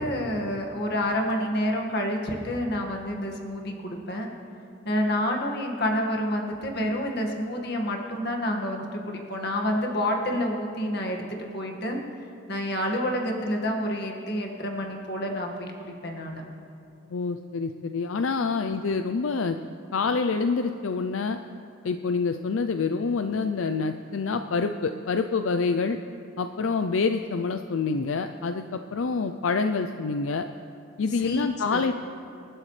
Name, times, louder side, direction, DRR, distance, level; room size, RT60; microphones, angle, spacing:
voice 1, 0.0-4.3 4.9-12.0 12.5-16.4 31.2-31.8, equal, 55° left, 1 dB, 1.8 m, -28 dB
voice 2, 17.1-19.6 19.9-21.4 21.8-26.0 26.4-30.4 31.0-31.9, left 4 dB, 80° left, 8 dB, 0.5 m, -27 dB
27.0 x 12.0 x 3.3 m, 2.8 s
head